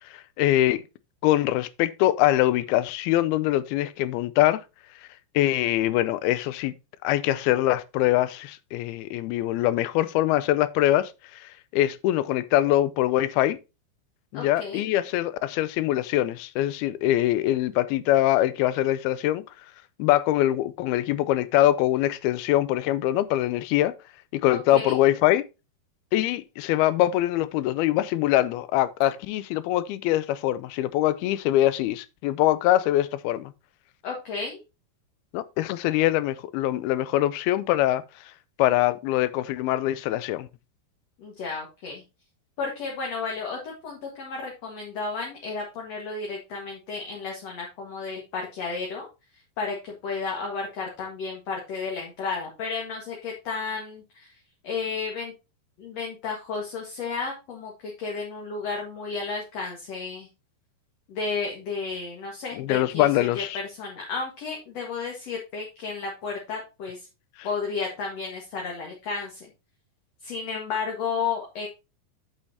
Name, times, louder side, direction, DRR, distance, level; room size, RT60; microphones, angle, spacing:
voice 1, 0.1-0.8 1.2-4.6 5.4-6.7 7.0-11.4 11.7-13.6 14.3-19.4 20.0-23.9 24.3-25.5 26.1-33.5 35.3-38.0 38.6-40.5 62.6-63.6, left 14 dB, 85° left, 2.6 m, -23 dB
voice 2, 14.3-14.9 24.5-25.0 34.0-34.6 41.2-42.0 42.6-49.1 49.6-54.3 54.6-55.3 55.8-60.3 61.1-63.4 63.7-67.1 67.4-69.5 70.2-71.7, left 4 dB, 50° left, 2.5 m, -32 dB
8.6 x 8.3 x 2.8 m
omnidirectional pair, 4.4 m